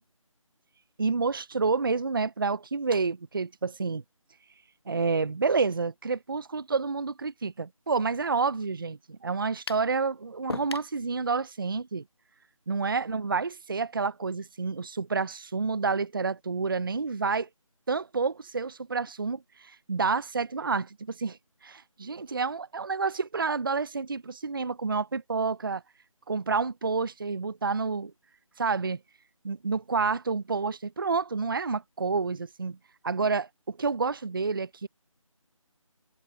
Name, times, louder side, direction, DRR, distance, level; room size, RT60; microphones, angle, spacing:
voice 1, 1.0-4.0 4.9-12.0 12.7-17.5 17.9-25.8 26.3-28.1 28.6-29.0 29.4-32.8 33.0-34.9, right 4 dB, 40° right, 0.5 m, -29 dB
sound 1, 9.7-9.9 10.5-10.9, left 4 dB, 45° left, 0.4 m, -36 dB
figure-of-eight pair, 170°, 18 cm